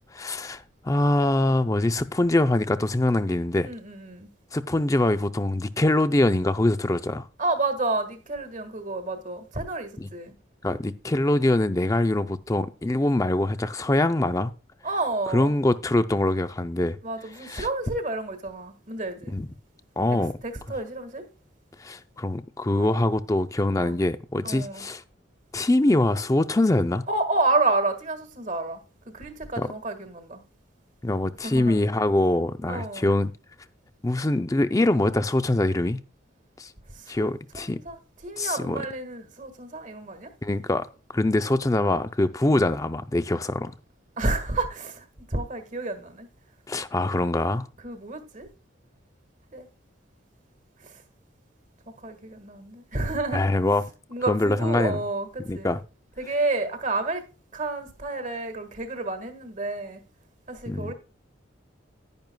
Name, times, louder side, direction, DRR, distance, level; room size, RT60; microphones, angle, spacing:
voice 1, 0.1-3.7 4.5-7.3 10.0-10.1 10.6-14.5 15.3-17.0 17.4-17.7 19.3-19.5 20.0-20.4 21.8-25.0 25.5-27.0 29.6-29.7 31.0-33.3 34.0-36.0 36.6-36.7 37.1-37.8 38.4-38.8 40.4-40.9 41.1-43.7 46.7-47.7 53.3-53.8 54.3-55.0 55.4-55.8 60.7-60.9, left 1 dB, 15° left, 0.5 m, -23 dB
voice 2, 3.6-4.3 7.4-10.3 14.8-15.5 17.0-19.3 20.4-21.3 22.8-23.0 23.8-23.9 24.4-24.8 27.1-28.8 29.0-30.4 31.4-31.8 32.7-33.1 36.9-37.3 37.5-38.0 38.2-40.3 44.2-46.3 47.8-48.5 49.5-49.7 50.8-51.0 51.9-53.6 54.1-55.7 56.2-57.2 57.5-60.0 60.5-60.9, right 2 dB, 40° right, 1.6 m, -30 dB
10.5 x 10.5 x 2.2 m
head